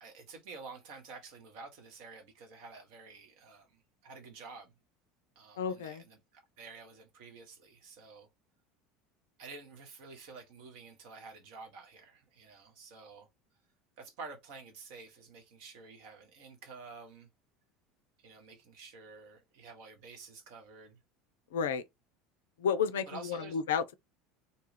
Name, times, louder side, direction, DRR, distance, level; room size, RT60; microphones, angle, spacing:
voice 1, 0.0-4.7 5.4-8.3 9.4-13.3 14.0-17.3 18.2-21.0 23.1-23.6, right 4 dB, 55° right, 0.9 m, -50 dB
voice 2, 5.6-6.0 21.5-21.8 22.6-23.9, left 7 dB, 70° left, 0.4 m, -31 dB
2.6 x 2.3 x 3.1 m
figure-of-eight pair, 70°, 0 cm